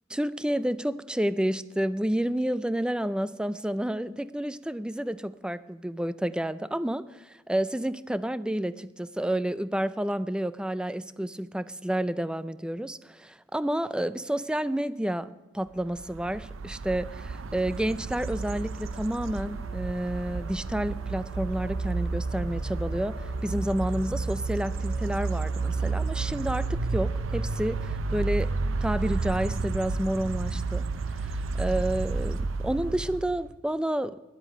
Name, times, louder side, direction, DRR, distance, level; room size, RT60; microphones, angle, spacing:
voice 1, 0.1-34.2, right 1 dB, 5° right, 16 dB, 0.3 m, -30 dB
sound 1, 15.9-33.5, right 3 dB, 80° right, 0.6 m, -31 dB
sound 2, 18.3-27.9, left 3 dB, 35° left, 1.8 m, -51 dB
10.5 x 8.1 x 8.7 m, 1.1 s
head